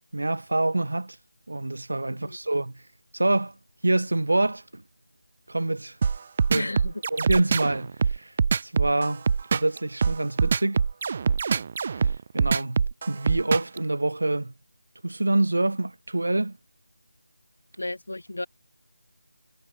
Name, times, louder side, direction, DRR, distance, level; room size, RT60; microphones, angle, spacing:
voice 1, 0.1-1.2 1.5-2.7 3.1-3.5 3.8-4.8 5.5-6.0 6.5-6.7 7.1-8.3 8.6-9.2 9.5-10.8 11.9-14.5 15.0-16.6, right 2 dB, 70° right, 1.4 m, -26 dB
sound 1, 6.0-13.8, right 5 dB, 20° right, 0.9 m, -23 dB
voice 2, 6.5-7.0 17.8-18.5, left 2 dB, 85° left, 3.5 m, -33 dB
figure-of-eight pair, 180°, 0 cm